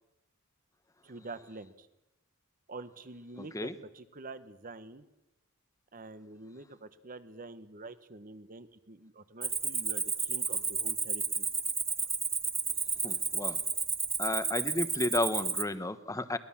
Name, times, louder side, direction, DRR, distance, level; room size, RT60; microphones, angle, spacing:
voice 1, 1.0-1.9 2.7-5.1 5.9-11.5 15.5-15.8, right 2 dB, 40° right, 13 dB, 1.3 m, -47 dB
Cricket, 9.4-15.6, right 5 dB, 10° right, 0.8 m, -32 dB
voice 2, 13.0-13.6 14.2-16.4, left 1 dB, 15° left, 12 dB, 1.1 m, -32 dB
23.0 x 20.0 x 7.3 m, 0.93 s
head